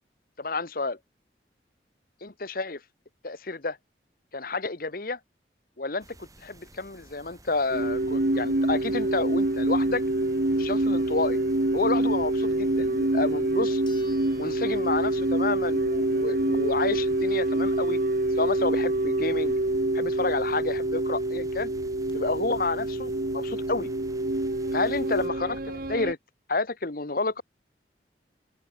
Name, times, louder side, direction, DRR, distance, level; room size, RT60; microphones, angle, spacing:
voice 1, 0.4-1.0 2.4-2.8 3.2-3.8 4.3-5.2 5.8-6.0 6.4-10.0 10.6-11.4 11.7-13.8 14.4-18.0 18.4-19.5 19.9-21.7 22.1-23.9 24.7-25.6 25.9-26.2 26.5-27.4, left 3 dB, 55° left, 1.5 m, -29 dB
sound 1, 6.0-25.3, right 2 dB, 20° right, 3.7 m, -53 dB
sound 2, 7.7-26.1, right 1 dB, 55° right, 1.3 m, -26 dB
sound 3, 13.9-15.6 16.0-16.1 20.7-20.8 21.0-21.1 21.7-22.1, left 6 dB, 25° left, 7.3 m, -55 dB
open air
head